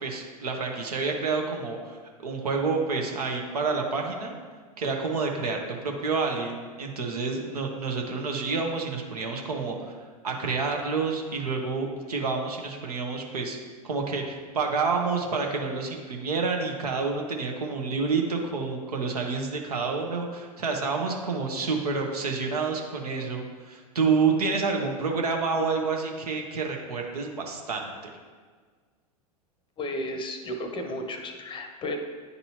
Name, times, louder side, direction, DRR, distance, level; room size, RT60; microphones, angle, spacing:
voice 1, 0.0-4.3 4.8-9.9 10.2-13.6 13.8-27.9, right 4 dB, 75° right, 2 dB, 1.0 m, -28 dB
voice 2, 29.8-32.0, left 1 dB, 25° left, 5 dB, 0.7 m, -33 dB
9.5 x 4.1 x 2.8 m, 1.5 s
figure-of-eight pair, 90°, 20 cm